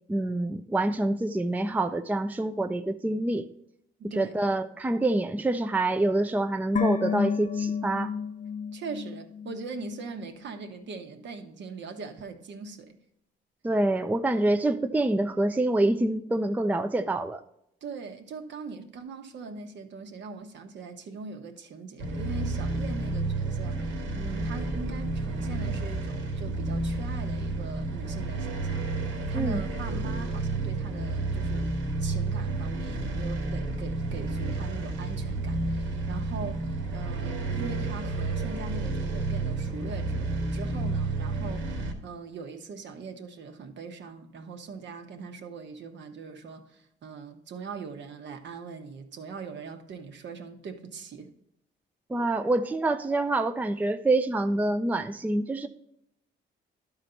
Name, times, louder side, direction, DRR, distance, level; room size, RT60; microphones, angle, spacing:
voice 1, 0.1-3.5 4.0-8.1 13.6-17.4 29.3-29.6 52.1-55.7, right 2 dB, 10° right, 0.4 m, -26 dB
voice 2, 4.0-4.4 8.7-13.0 17.8-51.3, right 4 dB, 65° right, 1.2 m, -41 dB
sound 1, 6.8-10.1 10.3-10.4, left 6 dB, 40° left, 0.7 m, -31 dB
sound 2, 22.0-41.9, right 2 dB, 80° right, 1.5 m, -31 dB
12.0 x 4.0 x 4.4 m
cardioid pair, 90°, 20 cm